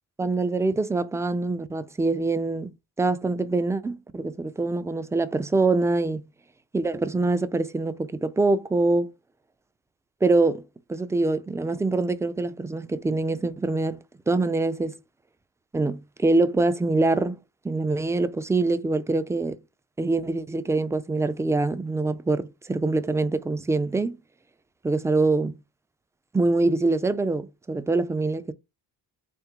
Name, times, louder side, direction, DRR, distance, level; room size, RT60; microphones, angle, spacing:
voice 1, 0.2-2.7 3.0-6.2 6.7-9.1 10.2-10.6 10.9-14.0 14.3-14.9 15.7-17.4 17.6-19.6 20.0-24.2 24.8-25.5 26.3-28.5, right 3 dB, 5° right, 0.3 m, -24 dB
3.6 x 3.4 x 2.9 m
cardioid pair, 80°, 44 cm